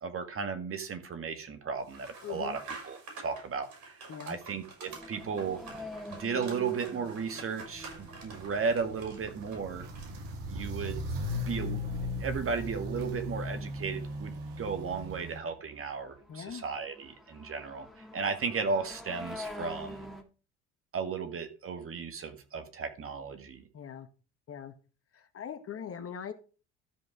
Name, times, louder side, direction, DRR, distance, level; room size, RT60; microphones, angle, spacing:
voice 1, 0.0-2.6 2.8-4.0 4.3-5.6 6.2-9.9 10.5-11.0 11.3-11.8 12.2-17.9 18.1-20.1 20.9-23.7, right 5 dB, 40° right, 7 dB, 2.0 m, -35 dB
sound 1, 1.9-10.3, right 3 dB, 55° right, 5.9 m, -48 dB
voice 2, 2.2-2.6 4.1-4.4 16.3-16.6 23.7-24.1 24.5-24.7 25.1-26.3, left 8 dB, 40° left, 8 dB, 1.5 m, -41 dB
sound 2, 4.8-12.0 12.4-12.5 12.8-13.3 14.1-14.2 14.8-20.2, left 1 dB, ahead, 2.3 m, -47 dB
Walk footsteps, 7.7-15.4, left 1 dB, 70° right, 2.1 m, -37 dB
13.5 x 5.2 x 4.9 m, 0.36 s
hypercardioid pair, 65°, 34 cm